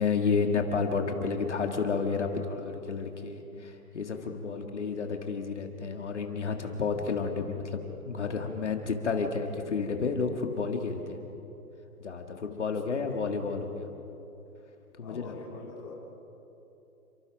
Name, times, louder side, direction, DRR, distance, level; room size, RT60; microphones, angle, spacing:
voice 1, 0.0-11.2 12.0-13.9 15.0-15.3, left 5 dB, 50° left, 4 dB, 1.8 m, -31 dB
voice 2, 4.4-4.8 12.6-13.2 15.0-15.9, left 4 dB, 10° left, -5 dB, 2.4 m, -46 dB
29.5 x 24.0 x 5.2 m, 3.0 s
hypercardioid pair, 180°, 46 cm